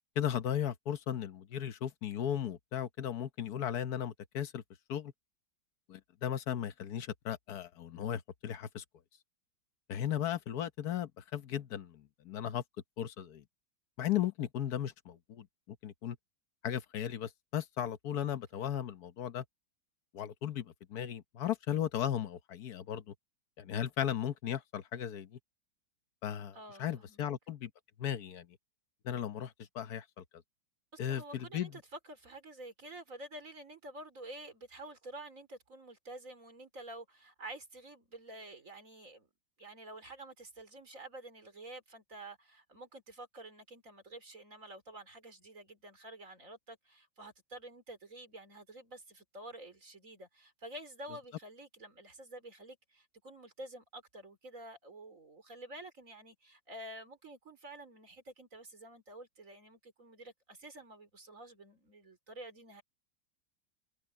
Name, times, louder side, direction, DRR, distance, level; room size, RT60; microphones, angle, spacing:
voice 1, 0.2-4.6 4.9-5.1 5.9-8.8 9.9-12.6 13.0-13.4 14.0-16.2 16.6-19.4 20.1-23.1 23.6-25.3 26.2-27.7 28.0-28.5 29.0-30.0 31.0-31.7, left 10 dB, 60° left, 1.3 m, -36 dB
voice 2, 26.5-27.3 30.9-39.3 39.6-62.8, right 1 dB, 40° right, 4.0 m, -49 dB
omnidirectional pair, 2.1 m